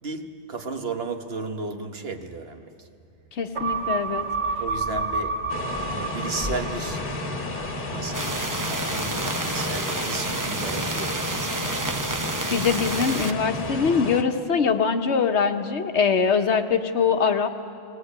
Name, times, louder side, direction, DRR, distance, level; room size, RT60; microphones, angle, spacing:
voice 1, 0.0-2.9 4.6-5.3 5.9-7.0 7.9-11.8, right 3 dB, 60° right, 1.4 m, -34 dB
voice 2, 3.3-4.2 12.5-17.5, left 6 dB, 80° left, 1.3 m, -23 dB
sound 1, 3.5-8.2 8.6-8.7, right 4 dB, 45° right, 2.1 m, -30 dB
sound 2, 5.5-14.2, left 2 dB, 50° left, 1.4 m, -32 dB
sound 3, 8.1-13.3, right 3 dB, 20° right, 0.6 m, -30 dB
20.5 x 19.0 x 8.7 m
omnidirectional pair, 1.1 m